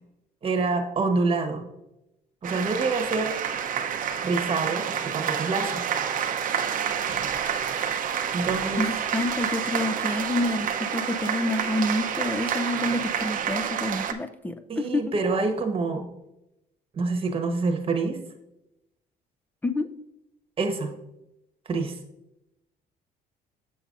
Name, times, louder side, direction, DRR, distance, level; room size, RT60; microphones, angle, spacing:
voice 1, 0.4-1.7 2.4-3.4 4.2-5.8 8.3-8.8 14.7-16.1 16.9-18.2 20.6-20.9 21.7-22.0, right 3 dB, 35° right, 4 dB, 1.1 m, -26 dB
sound 1, 2.4-14.1, right 8 dB, 50° right, 0.7 m, -28 dB
voice 2, 8.8-15.1 19.6-19.9, left 1 dB, 10° left, 11 dB, 0.5 m, -28 dB
7.2 x 6.8 x 2.5 m, 0.89 s
cardioid pair, 110°, 17 cm